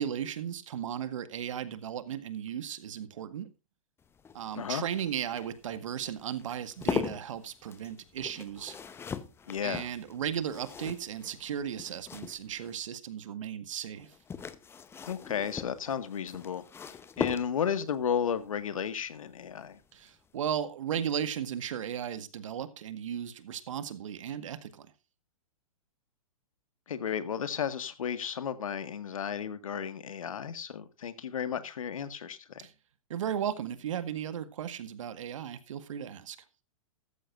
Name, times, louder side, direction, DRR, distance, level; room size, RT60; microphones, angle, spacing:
voice 1, 0.0-3.5 4.3-8.8 9.6-14.1 19.9-24.9 32.6-32.7 33.1-36.4, right 9 dB, 60° right, 1.7 m, -35 dB
sound 1, 4.0-12.8 14.0-17.9 19.5-19.8 20.1-20.2, left 6 dB, 15° left, 0.9 m, -40 dB
voice 2, 9.5-9.9 15.1-19.8 26.9-32.7, left 8 dB, 65° left, 1.8 m, -33 dB
14.5 x 14.0 x 2.5 m
figure-of-eight pair, 110°, 18 cm